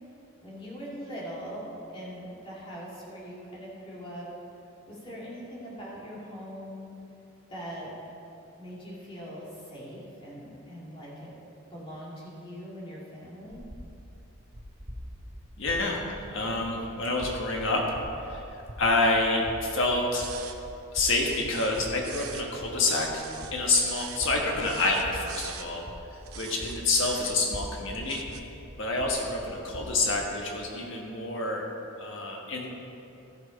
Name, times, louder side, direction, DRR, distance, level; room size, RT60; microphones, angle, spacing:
voice 1, 0.4-1.6 1.9-4.3 4.9-6.9 7.5-7.9 8.6-11.3 11.7-13.6, equal, 25° left, -7 dB, 2.6 m, -41 dB
sound 1, 13.5-30.3, equal, 50° right, 2.5 m, -44 dB
voice 2, 15.6-16.0 16.3-17.9 18.2-20.3 20.9-23.2 23.5-25.9 26.3-28.3 28.8-31.7 32.0-32.7, left 2 dB, 60° left, 0 dB, 1.5 m, -28 dB
sound 2, 20.2-20.6 21.1-22.5 22.8-24.2 24.6-25.7 26.3-27.6 28.0-28.4, right 9 dB, 80° right, 0.8 m, -42 dB
14.0 x 6.6 x 5.3 m, 2.8 s
head